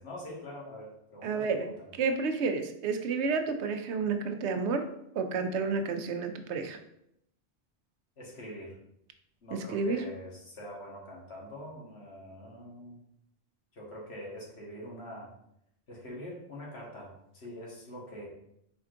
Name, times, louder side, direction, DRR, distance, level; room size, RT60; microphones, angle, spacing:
voice 1, 0.0-1.9 8.2-8.8 9.4-13.0 13.7-15.3 15.9-17.1 17.3-18.3, equal, 70° left, -4 dB, 1.6 m, -44 dB
voice 2, 1.2-1.7 2.0-4.9 5.1-6.8 9.5-10.0, right 4 dB, 90° right, 7 dB, 0.9 m, -30 dB
4.5 x 4.2 x 2.5 m, 0.76 s
omnidirectional pair, 1.1 m